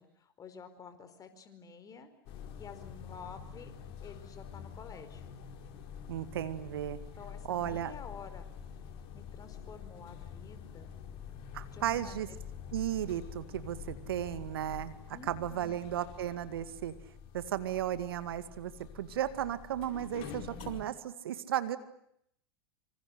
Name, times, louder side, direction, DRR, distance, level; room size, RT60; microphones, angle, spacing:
voice 1, 0.0-2.1 2.5-3.7 4.0-5.2 7.2-8.5 9.1-11.0 11.7-12.4 15.1-15.8, left 5 dB, 30° left, 10 dB, 4.8 m, -50 dB
sound 1, 2.3-20.8, left 7 dB, 50° left, 4.6 m, -47 dB
voice 2, 6.1-7.0 7.5-7.9 11.5-12.3 12.7-14.9 15.3-16.9 17.3-21.8, right 11 dB, 75° right, 12 dB, 2.1 m, -35 dB
26.0 x 26.0 x 8.0 m, 0.72 s
hypercardioid pair, 95°, 13 cm